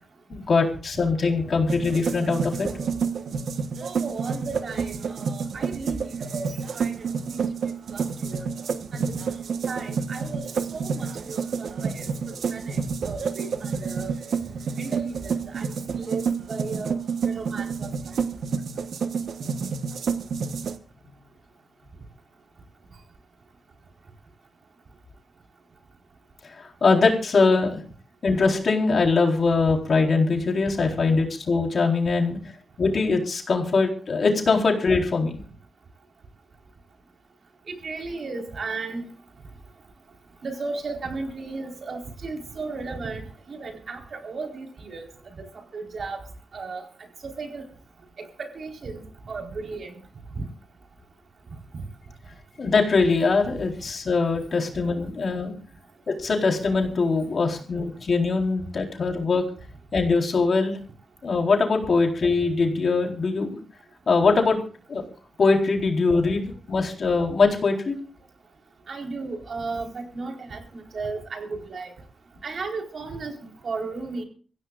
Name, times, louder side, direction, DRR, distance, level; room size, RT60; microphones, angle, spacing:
voice 1, 0.3-2.7 26.5-27.8 28.2-32.4 32.8-35.4 52.6-55.5 56.1-59.4 59.9-60.8 61.2-63.5 64.1-64.6 64.9-65.0 65.4-68.0, left 4 dB, 60° left, 2 dB, 4.0 m, -22 dB
sound 1, 1.7-20.8, right 5 dB, 85° right, 1.1 m, -29 dB
voice 2, 3.8-7.0 7.3-7.4 7.9-8.5 8.9-9.2 9.7-10.5 10.7-14.2 14.8-17.0 17.2-17.9 37.7-39.0 40.4-45.1 45.4-45.5 45.7-46.2 46.5-46.8 47.2-47.6 48.2-50.0 50.4-50.5 68.9-71.9 72.4-73.3 73.6-74.2, right 3 dB, 65° right, 2 dB, 4.3 m, -35 dB
25.5 x 16.0 x 2.5 m, 0.39 s
cardioid pair, 85°, 0 cm